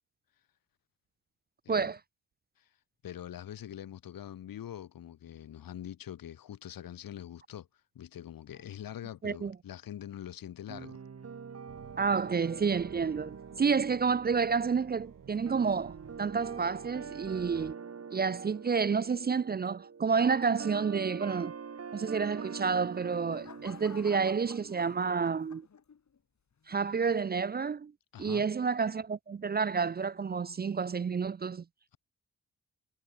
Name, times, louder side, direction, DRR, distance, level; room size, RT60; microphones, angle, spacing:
voice 1, 3.0-7.7 7.9-11.0 28.1-28.5, left 11 dB, 80° left, 3.0 m, -44 dB
voice 2, 9.2-9.6 12.0-17.8 18.1-21.5 21.9-25.7 26.7-27.9 28.2-31.6, right 5 dB, 30° right, 0.5 m, -30 dB
sound 1, 10.7-25.1, right 6 dB, 45° right, 2.0 m, -45 dB
sound 2, 11.7-17.7, right 8 dB, 70° right, 7.8 m, -54 dB
sound 3, 22.7-26.2 26.7-27.1, left 6 dB, 55° left, 3.2 m, -52 dB
supercardioid pair, 50°, 34 cm